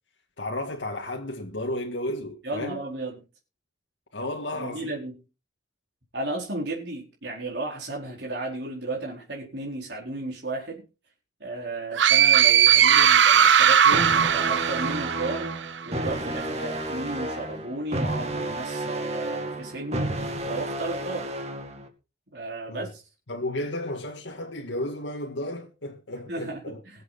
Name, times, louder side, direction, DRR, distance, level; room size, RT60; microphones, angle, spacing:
voice 1, 0.4-2.8 4.1-4.9 22.7-22.9 23.3-26.8, left 1 dB, 85° left, 1.9 m, -33 dB
voice 2, 2.4-3.2 4.5-5.1 6.1-10.8 11.4-15.5 15.8-20.1 20.5-21.3 22.3-23.0 26.3-26.7, right 2 dB, 70° right, 4.5 m, -34 dB
sound 1, 12.0-15.6, right 9 dB, 85° right, 0.8 m, -18 dB
sound 2, 13.9-21.9, right 1 dB, 35° right, 2.4 m, -31 dB
22.0 x 7.9 x 4.1 m
head